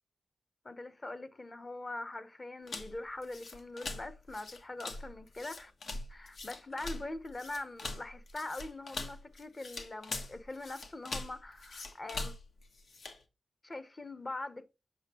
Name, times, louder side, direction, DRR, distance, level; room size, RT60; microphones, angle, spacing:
voice 1, 0.6-5.7 6.1-12.3 13.6-14.6, left 2 dB, 35° left, 0.9 m, -43 dB
sound 1, 2.7-13.2, left 2 dB, 75° left, 1.2 m, -43 dB
8.0 x 5.9 x 2.9 m
wide cardioid pair, 95°, 0 cm